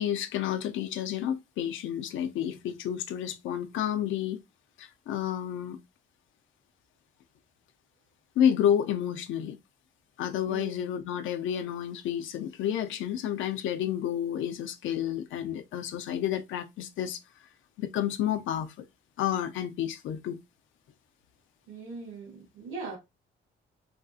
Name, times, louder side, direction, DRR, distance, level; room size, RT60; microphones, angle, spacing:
voice 1, 0.0-4.4 4.8-5.8 8.4-9.6 10.2-17.2 17.8-18.9 19.2-20.4, left 10 dB, 80° left, 0.5 m, -30 dB
voice 2, 10.5-10.8 21.7-23.0, right 4 dB, 85° right, 1.6 m, -40 dB
3.4 x 2.6 x 2.4 m
cardioid pair, 90°, 20 cm